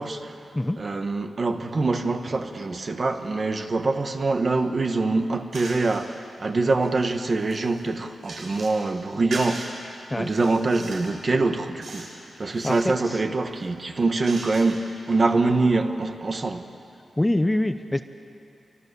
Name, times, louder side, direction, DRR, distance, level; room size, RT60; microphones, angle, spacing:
voice 1, 0.0-0.4 0.8-9.8 10.2-16.7, right 3 dB, 35° right, 1.4 m, -24 dB
sound 1, 5.5-6.0 6.6-8.8 9.3-9.7 10.2-11.2 11.8-12.2 12.5-12.9 13.5-15.0, right 2 dB, 75° right, 6.4 m, -39 dB
voice 2, 12.5-13.2 17.2-18.0, left 1 dB, 10° left, 0.7 m, -25 dB
28.0 x 25.0 x 7.0 m
wide cardioid pair, 135°, 0 cm